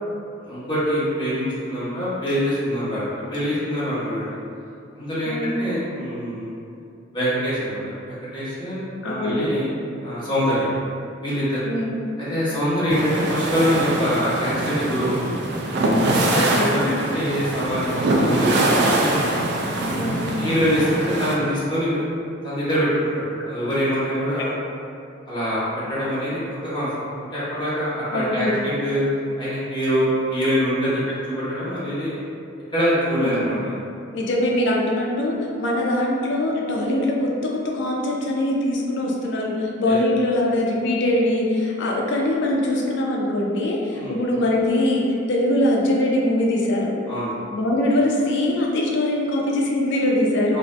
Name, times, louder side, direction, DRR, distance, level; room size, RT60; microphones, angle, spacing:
voice 1, 0.4-3.0 3.3-4.3 4.9-6.5 7.1-9.7 10.0-10.7 11.2-11.6 12.2-15.4 16.0-19.2 19.8-22.1 22.4-24.5 25.3-26.4 26.7-26.9 27.3-29.0 29.4-32.2 32.7-33.8 39.9-40.0 43.9-44.2 47.1-47.3 50.5-50.6, equal, 25° left, -11 dB, 1.0 m, -24 dB
voice 2, 9.0-9.5 11.6-12.0 16.3-16.8 19.9-20.3 28.1-28.5 33.2-33.6 34.1-46.9 47.5-50.6, left 1 dB, 65° left, -2 dB, 0.4 m, -22 dB
sound 1, 12.9-21.4, right 1 dB, 60° right, 0.4 m, -23 dB
2.6 x 2.4 x 3.2 m, 2.4 s
head